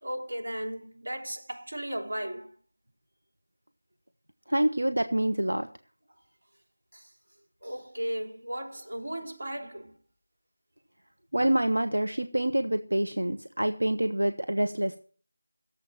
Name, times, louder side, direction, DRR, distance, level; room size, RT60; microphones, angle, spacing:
voice 1, 0.0-2.5 6.9-7.1 7.6-10.0, equal, 50° right, 3.3 m, -36 dB
voice 2, 4.5-5.7 11.3-15.0, right 1 dB, 70° right, 1.2 m, -26 dB
16.5 x 7.7 x 7.5 m
figure-of-eight pair, 170°, 0 cm